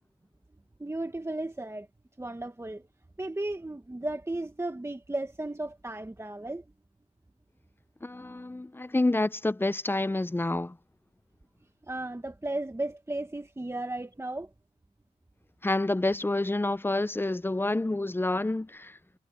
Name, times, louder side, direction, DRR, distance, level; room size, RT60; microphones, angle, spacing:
voice 1, 0.8-1.9 2.2-2.9 3.2-6.6 11.8-14.5, right 2 dB, 15° right, 1.7 m, -35 dB
voice 2, 8.0-10.8 15.6-19.0, left 2 dB, 15° left, 0.7 m, -28 dB
cardioid pair, 50°, 16 cm